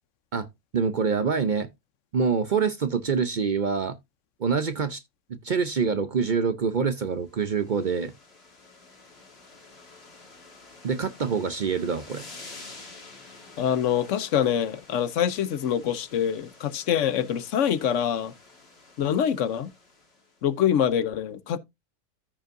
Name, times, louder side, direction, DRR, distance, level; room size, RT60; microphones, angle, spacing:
voice 1, 0.7-1.7 2.1-4.0 4.4-5.0 5.3-8.1 10.8-12.2, right 5 dB, 55° right, 0.5 m, -25 dB
sound 1, 7.2-20.4, left 3 dB, 45° left, 2.2 m, -49 dB
voice 2, 13.6-18.3 19.0-19.7 20.4-21.6, left 9 dB, 65° left, 0.9 m, -25 dB
14.0 x 5.3 x 2.5 m
omnidirectional pair, 1.5 m